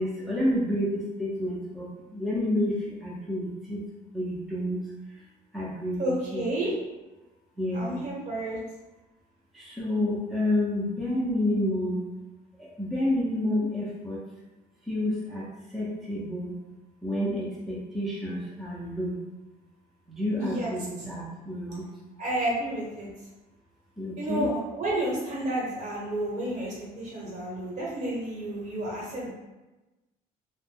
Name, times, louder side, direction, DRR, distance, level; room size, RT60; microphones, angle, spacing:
voice 1, 0.0-3.8 4.1-4.8 5.5-6.4 7.6-8.0 9.5-12.0 12.6-14.2 14.9-15.4 15.7-16.5 17.0-19.2 20.1-21.8 24.0-24.5, left 1 dB, ahead, -7 dB, 0.6 m, -29 dB
voice 2, 6.0-6.7 7.7-8.6 20.4-20.7 21.0-21.1 22.2-23.1 24.2-29.3, right 1 dB, 45° right, -6 dB, 1.2 m, -31 dB
2.6 x 2.1 x 3.4 m, 1.1 s
cardioid pair, 110°, 17 cm